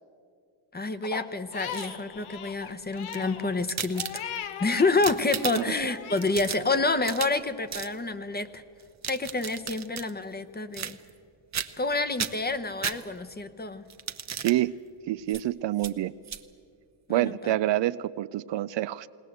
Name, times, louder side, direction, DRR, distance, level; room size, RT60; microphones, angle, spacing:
voice 1, 0.7-4.2 4.6-8.6 9.1-11.0 11.8-13.9 17.1-17.5, left 3 dB, 20° left, 11 dB, 0.9 m, -28 dB
Crying sobbing, 1.0-4.9 5.3-6.3, left 9 dB, 80° left, 1.2 m, -39 dB
sound 1, 1.5-2.2 2.9-4.5 4.9-5.8 6.2-7.4 7.7-7.9 8.8-10.1 10.7-11.2 11.5-11.9 12.2-13.4 13.9-14.6 15.3-15.4 15.8-15.9 16.2-16.4, right 8 dB, 35° right, 0.8 m, -35 dB
voice 2, 14.4-14.8 15.1-16.1 17.1-19.1, right 14 dB, 60° right, 15 dB, 0.5 m, -27 dB
20.0 x 19.5 x 7.8 m, 2.3 s
cardioid pair, 110°, 50 cm